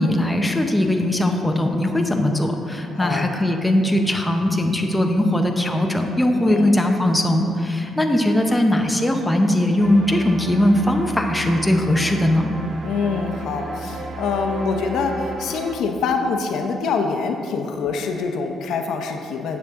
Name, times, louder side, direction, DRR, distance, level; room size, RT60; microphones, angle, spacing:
voice 1, 0.0-12.5, left 1 dB, 10° left, 3 dB, 0.8 m, -20 dB
voice 2, 2.9-3.3 6.5-6.7 12.8-19.6, left 5 dB, 80° left, 4 dB, 0.7 m, -25 dB
sound 1, 9.8-15.7, right 3 dB, 50° right, 0.9 m, -34 dB
9.4 x 7.2 x 3.7 m, 2.6 s
cardioid pair, 90°, 0 cm